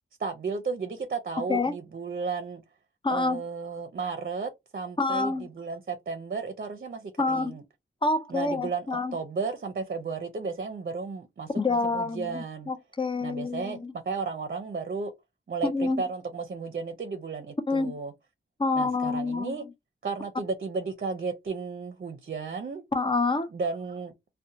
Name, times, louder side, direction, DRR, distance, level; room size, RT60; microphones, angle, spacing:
voice 1, 0.2-2.6 3.1-7.6 8.3-12.7 13.2-15.1 15.5-18.1 18.7-19.7 20.0-22.8 23.5-24.3, right 4 dB, 50° right, 0.6 m, -34 dB
voice 2, 3.0-3.4 5.0-5.5 7.2-7.6 8.0-9.1 11.6-13.9 15.6-16.0 17.7-17.9 18.6-19.6 22.9-23.5, left 3 dB, 25° left, 0.5 m, -27 dB
2.6 x 2.1 x 2.6 m
cardioid pair, 65°, 20 cm